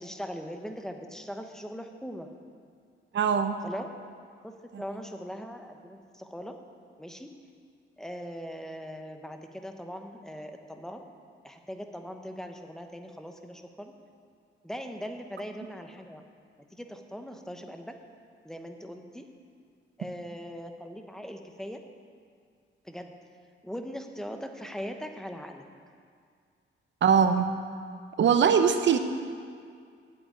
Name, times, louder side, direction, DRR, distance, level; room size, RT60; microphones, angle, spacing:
voice 1, 0.0-2.3 3.6-3.9 4.4-6.5 7.0-7.3 8.0-11.0 11.4-13.9 14.6-16.2 16.7-17.9 18.4-19.2 20.0-21.8 22.8-23.1 23.6-25.6, equal, ahead, 5 dB, 0.9 m, -40 dB
voice 2, 3.1-3.6 4.7-4.8 27.0-27.5 28.2-29.0, right 7 dB, 60° right, 8 dB, 0.8 m, -22 dB
8.6 x 7.9 x 9.1 m, 2.2 s
cardioid pair, 125°, 21 cm